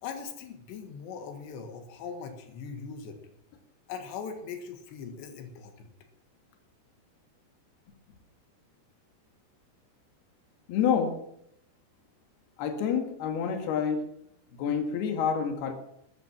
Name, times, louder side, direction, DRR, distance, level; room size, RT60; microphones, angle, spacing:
voice 1, 0.0-3.2 3.9-5.9, left 6 dB, 85° left, 5 dB, 4.0 m, -40 dB
voice 2, 10.7-11.2 12.6-14.1 14.5-15.7, left 7 dB, 70° left, 5 dB, 3.7 m, -28 dB
13.5 x 13.5 x 6.1 m, 0.75 s
omnidirectional pair, 4.9 m